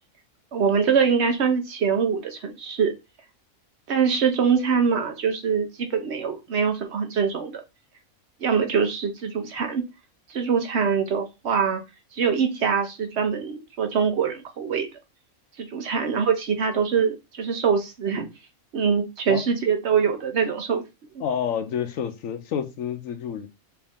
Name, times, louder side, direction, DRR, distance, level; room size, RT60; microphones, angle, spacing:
voice 1, 0.5-2.9 3.9-7.6 8.4-9.8 10.3-11.8 12.1-14.9 15.6-18.3 18.7-20.8 21.1-21.2, right 6 dB, 60° right, 0.9 m, -23 dB
voice 2, 21.2-23.5, left 8 dB, 75° left, 1.0 m, -29 dB
4.7 x 2.6 x 3.5 m
omnidirectional pair, 1.5 m